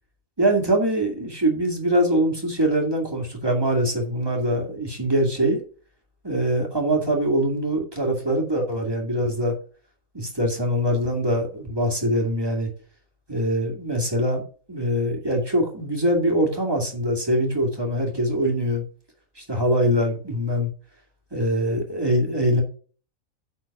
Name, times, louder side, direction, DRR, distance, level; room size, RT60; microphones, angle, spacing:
voice 1, 0.4-5.6 6.2-9.5 10.1-12.7 13.3-14.4 14.7-18.8 19.4-20.7 21.3-22.6, equal, 15° right, 1 dB, 2.3 m, -23 dB
9.4 x 4.4 x 5.9 m, 0.40 s
omnidirectional pair, 1.5 m